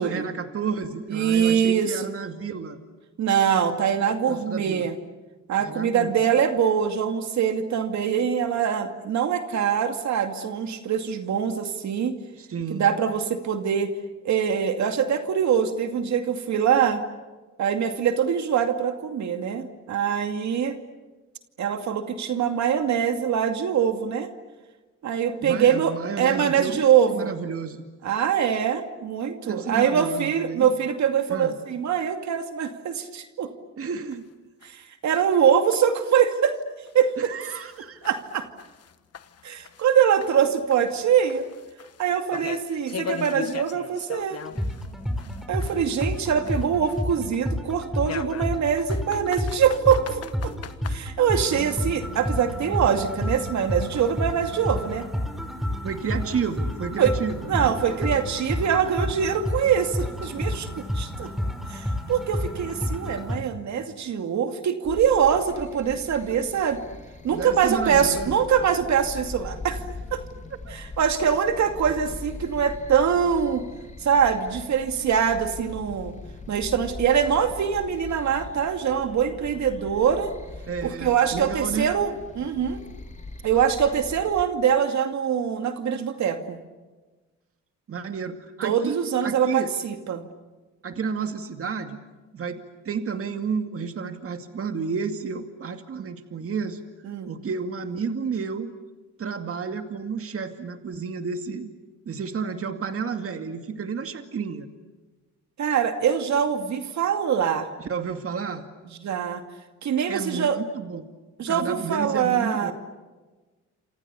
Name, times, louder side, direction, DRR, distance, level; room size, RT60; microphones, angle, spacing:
voice 1, 0.0-2.8 4.3-4.9 5.6-6.1 12.4-12.9 25.4-27.8 29.4-30.7 31.3-31.6 33.8-34.2 37.2-38.1 55.8-58.1 67.3-68.5 70.7-70.8 80.7-81.9 87.9-89.7 90.8-92.0 92.3-96.8 97.3-98.7 99.2-101.7 102.1-104.7 107.8-108.6 110.1-111.1 111.4-112.7, right 6 dB, 50° right, 7 dB, 2.3 m, -31 dB
voice 2, 1.1-1.9 3.2-5.0 5.5-12.1 12.7-14.0 14.2-17.0 17.6-20.8 21.6-24.3 25.0-27.3 28.0-33.5 34.6-36.6 36.9-37.3 38.0-38.5 39.4-41.5 42.0-44.4 45.5-50.5 50.9-55.1 57.0-57.1 57.5-60.7 60.9-61.3 61.7-66.8 67.2-69.8 70.1-70.2 70.7-73.6 74.0-76.1 76.5-80.3 80.8-82.8 83.4-86.6 88.6-90.2 97.1-97.3 105.6-107.7 109.0-109.4 109.8-110.6 111.4-112.7, right 8 dB, 65° right, 6 dB, 2.4 m, -23 dB
sound 1, 34.1-34.2 34.6-34.7 35.2-35.3 35.7-35.8 36.3-36.4 36.9-37.0 37.5-40.0 40.2-44.9 45.2-47.2 48.0-50.9, left 8 dB, 55° left, 1.4 m, -38 dB
sound 2, 44.5-63.4, left 1 dB, ahead, 4.9 m, -30 dB
sound 3, 64.8-84.4, left 3 dB, 25° left, 2.8 m, -41 dB
29.0 x 27.5 x 7.0 m, 1.2 s
cardioid pair, 90°, 30 cm